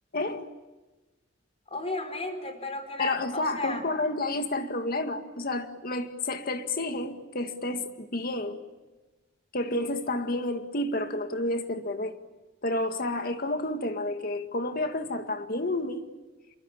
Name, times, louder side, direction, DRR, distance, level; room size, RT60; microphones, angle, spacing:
voice 1, 0.1-0.5 3.0-8.6 9.5-12.1 12.6-16.0, left 2 dB, 50° left, 2.0 m, -30 dB
voice 2, 1.7-3.8, left 2 dB, 30° left, 4.7 m, -33 dB
28.0 x 23.0 x 8.8 m
head